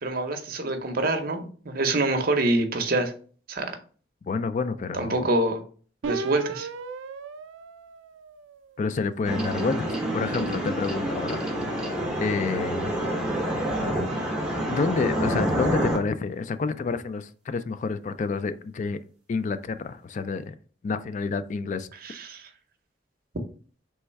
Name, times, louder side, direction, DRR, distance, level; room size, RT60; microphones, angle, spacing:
voice 1, 0.0-3.1 3.5-3.7 4.9-5.6 6.0-6.7 22.0-22.4, right 2 dB, 50° right, 0.7 m, -26 dB
voice 2, 4.2-5.3 8.8-11.4 12.2-12.9 14.7-19.0 19.3-20.5 20.8-21.9, left 4 dB, 40° left, 0.3 m, -28 dB
sound 1, 6.0-8.7 9.3-11.8, right 4 dB, 85° right, 0.4 m, -37 dB
sound 2, 9.2-16.0, right 1 dB, 5° right, 0.8 m, -28 dB
3.4 x 3.1 x 4.5 m
head